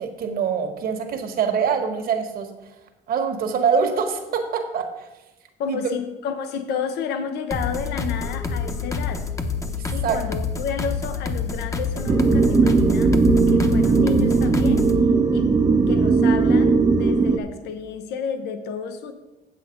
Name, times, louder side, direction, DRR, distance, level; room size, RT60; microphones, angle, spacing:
voice 1, 0.0-2.5 3.1-5.1 5.7-5.8 10.0-10.2, right 6 dB, 60° right, 4 dB, 1.5 m, -24 dB
voice 2, 5.6-9.3 9.9-13.2 13.5-14.9 15.3-15.5 15.9-19.1, left 6 dB, 80° left, 8 dB, 0.9 m, -31 dB
sound 1, 7.5-15.0, left 4 dB, 20° left, 0.8 m, -28 dB
sound 2, 12.1-17.4, right 4 dB, 20° right, 0.6 m, -18 dB
8.3 x 7.6 x 5.3 m, 1.0 s
cardioid pair, 110°, 17 cm